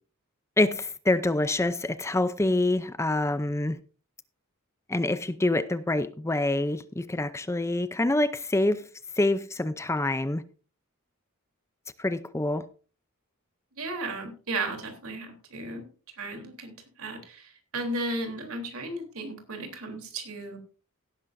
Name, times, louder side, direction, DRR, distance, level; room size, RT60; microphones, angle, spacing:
voice 1, 0.6-3.8 4.9-8.9 9.2-10.4 12.0-12.7, left 2 dB, 15° left, 0.5 m, -26 dB
voice 2, 13.8-15.8 16.2-20.6, right 2 dB, 75° right, 3.4 m, -35 dB
17.0 x 10.5 x 2.6 m
head